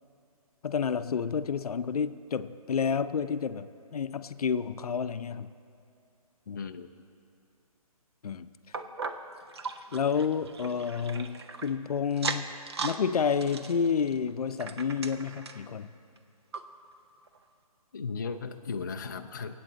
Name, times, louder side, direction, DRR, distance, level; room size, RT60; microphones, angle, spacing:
voice 1, 0.6-5.5 6.5-6.7 8.2-8.5 9.9-12.5 12.8-15.9, left 6 dB, 75° left, 12 dB, 0.6 m, -30 dB
voice 2, 6.6-6.9 17.9-19.5, left 5 dB, 30° left, 5 dB, 0.4 m, -36 dB
sound 1, 8.7-11.7 12.1-13.0 13.3-15.7 16.2-16.3 16.5-16.6 17.3-17.4, right 4 dB, 45° right, 0.7 m, -38 dB
25.5 x 8.6 x 4.0 m, 2.5 s
hypercardioid pair, 170°, 19 cm